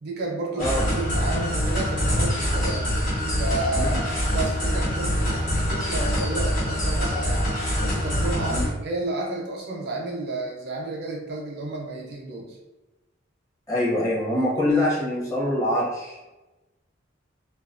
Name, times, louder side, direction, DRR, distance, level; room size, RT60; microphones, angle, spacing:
voice 1, 0.0-2.9 3.4-4.0 4.3-7.5 7.8-12.6, right 2 dB, 55° right, -1 dB, 0.5 m, -32 dB
sound 1, 0.6-8.7, equal, 45° left, 1.1 m, -24 dB
voice 2, 13.7-16.3, left 1 dB, 15° left, -7 dB, 0.7 m, -24 dB
2.3 x 2.3 x 2.4 m, 1.1 s
head